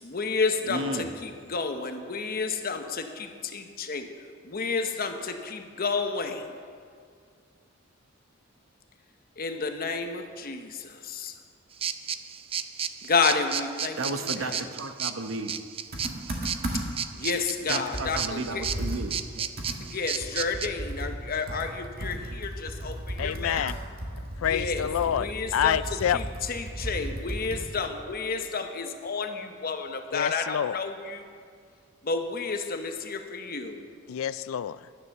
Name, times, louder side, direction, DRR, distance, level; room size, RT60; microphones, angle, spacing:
voice 1, 0.0-4.1 4.4-6.5 9.4-11.3 13.0-14.0 14.4-14.6 16.7-16.9 17.1-18.6 19.8-23.7 24.4-24.9 25.1-25.8 26.1-31.3 32.0-33.9, left 4 dB, 50° left, 6 dB, 1.0 m, -31 dB
voice 2, 0.6-1.1 14.0-15.5 17.7-19.5, right 2 dB, 75° right, 8 dB, 0.9 m, -33 dB
sound 1, 11.8-20.7, right 8 dB, 30° right, 0.4 m, -33 dB
Computer keyboard, 15.9-17.1 17.5-17.6 17.9-27.8, right 1 dB, 50° right, 1.9 m, -35 dB
voice 3, 23.2-23.8 24.4-26.2 30.1-30.8 34.1-34.9, left 9 dB, 85° left, 17 dB, 0.3 m, -27 dB
11.5 x 9.5 x 6.7 m, 2.1 s
head